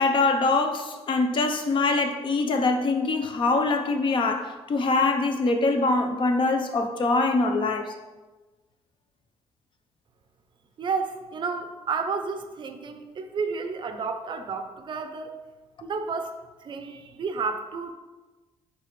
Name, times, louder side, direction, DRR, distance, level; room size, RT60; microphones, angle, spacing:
voice 1, 0.0-7.9, left 3 dB, 45° left, 0.6 m, -23 dB
voice 2, 10.8-15.3 15.8-17.9, right 5 dB, 45° right, 0.5 m, -31 dB
9.8 x 3.4 x 3.1 m
cardioid pair, 135°, 12 cm